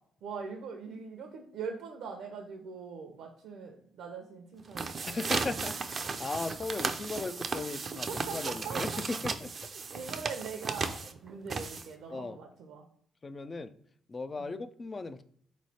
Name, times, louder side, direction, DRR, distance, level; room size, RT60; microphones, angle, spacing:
voice 1, 0.2-5.0 8.1-8.8 9.8-12.8, right 5 dB, 85° right, 3 dB, 0.7 m, -42 dB
sound 1, 4.6-12.1, right 4 dB, 40° right, 0.4 m, -35 dB
voice 2, 5.0-9.5 12.1-12.4 13.2-13.7 14.1-15.2, left 3 dB, 30° left, 11 dB, 0.4 m, -37 dB
4.0 x 3.2 x 4.1 m, 0.63 s
cardioid pair, 90°, 0 cm